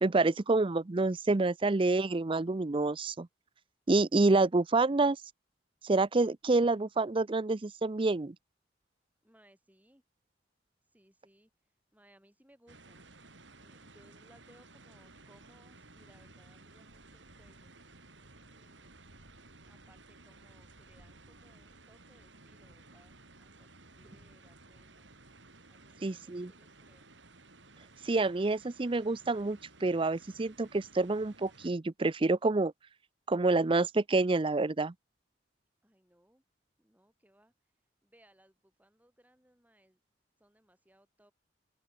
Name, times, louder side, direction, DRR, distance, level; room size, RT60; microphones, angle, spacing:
voice 1, 0.0-3.3 3.9-5.2 5.8-8.3 26.0-26.5 28.0-32.7 33.3-34.9, right 3 dB, 30° right, 0.5 m, -28 dB
voice 2, 9.2-10.0 10.9-11.5 11.9-13.1 13.6-17.7 18.5-19.1 19.6-25.1 25.7-27.1 35.8-36.4 36.8-37.5 38.0-40.0 40.4-41.3, right 1 dB, 10° right, 7.6 m, -65 dB
sound 1, 12.7-31.7, right 2 dB, 80° right, 7.6 m, -56 dB
open air
head